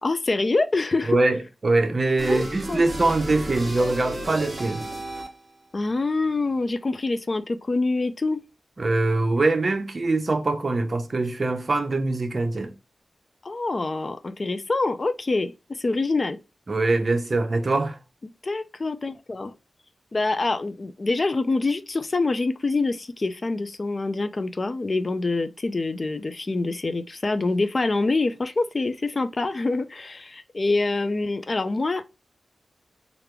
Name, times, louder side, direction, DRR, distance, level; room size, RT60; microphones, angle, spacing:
voice 1, 0.0-1.2 2.3-2.8 5.7-8.4 13.4-16.4 18.4-19.5 20.1-32.0, left 3 dB, 35° left, 0.3 m, -25 dB
voice 2, 1.6-4.8 8.8-12.7 16.7-18.0, right 2 dB, 40° right, 0.7 m, -23 dB
sound 1, 2.2-5.6, right 1 dB, 20° right, 1.1 m, -33 dB
3.3 x 2.5 x 4.4 m
wide cardioid pair, 125°, 0 cm